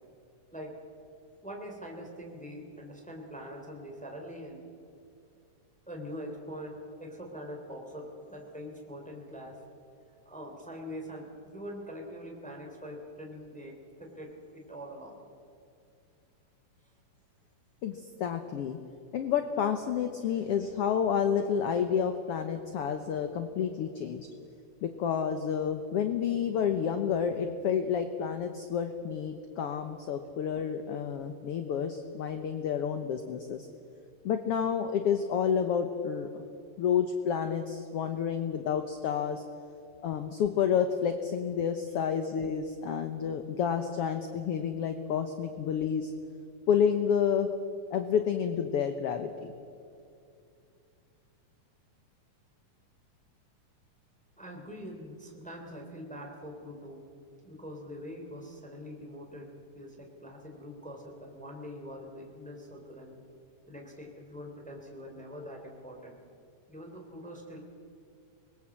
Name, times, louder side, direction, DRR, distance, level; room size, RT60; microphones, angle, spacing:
voice 1, 1.4-4.6 5.9-9.6 10.2-15.2 20.2-20.4 54.4-57.0 57.4-63.2 63.7-66.2 66.7-67.6, equal, ahead, 0 dB, 3.0 m, -43 dB
voice 2, 17.8-18.8 19.1-24.3 24.8-33.7 34.2-36.4 36.8-39.4 40.0-46.1 46.7-47.5 47.9-49.5, left 7 dB, 65° left, 7 dB, 1.6 m, -30 dB
25.0 x 20.5 x 7.4 m, 2.5 s
omnidirectional pair, 3.7 m